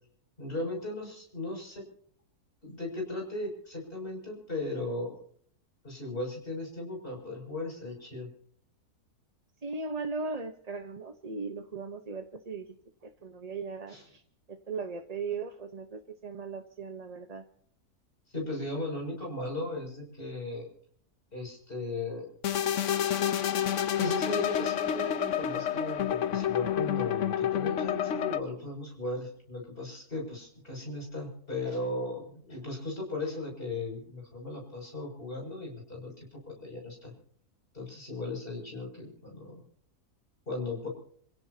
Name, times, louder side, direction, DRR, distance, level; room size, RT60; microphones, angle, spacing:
voice 1, 0.4-1.9 2.6-5.1 5.8-8.3 13.9-14.0 18.3-20.7 21.3-22.3 24.0-37.1 37.7-39.6 40.5-40.9, left 2 dB, 35° left, 0 dB, 7.3 m, -37 dB
voice 2, 9.6-12.8 13.0-14.2 14.5-17.5, right 4 dB, 30° right, 6 dB, 0.9 m, -38 dB
sound 1, 22.4-28.4, left 9 dB, 60° left, 1.0 m, -29 dB
28.5 x 16.5 x 2.8 m, 0.62 s
omnidirectional pair, 1.6 m